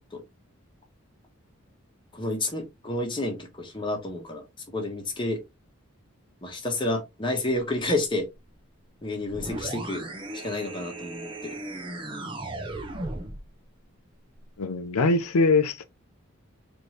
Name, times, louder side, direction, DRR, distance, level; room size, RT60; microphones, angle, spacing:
voice 1, 2.1-5.4 6.4-8.3 9.0-10.0 10.3-11.6, left 2 dB, 20° left, 1.1 m, -30 dB
sound 1, 9.3-13.5, right 2 dB, 25° right, 0.6 m, -36 dB
voice 2, 14.6-15.8, left 3 dB, 90° left, 0.6 m, -22 dB
4.3 x 2.7 x 3.2 m
head